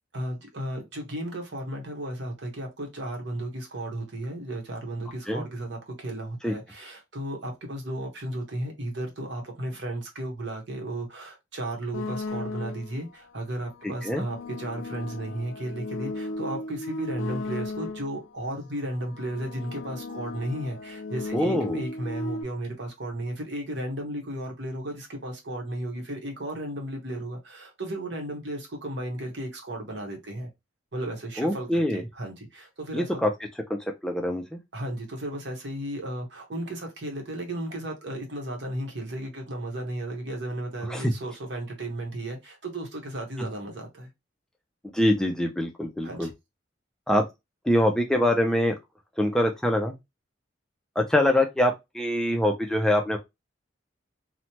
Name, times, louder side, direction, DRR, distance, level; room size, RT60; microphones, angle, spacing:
voice 1, 0.1-30.5 30.9-33.2 34.7-44.1 46.0-46.3, right 1 dB, 60° right, 1.0 m, -34 dB
sound 1, 11.9-13.0 13.8-18.3 19.0-22.4, left 2 dB, 90° left, 0.5 m, -35 dB
voice 2, 13.8-14.2 21.3-21.8 31.4-32.0 32.9-33.3 33.7-33.8 34.0-34.6 40.9-41.1 44.9-46.3 47.1-47.2 47.6-48.7 49.2-49.9 51.0-53.2, left 1 dB, 5° left, 0.3 m, -24 dB
3.0 x 2.1 x 2.7 m
head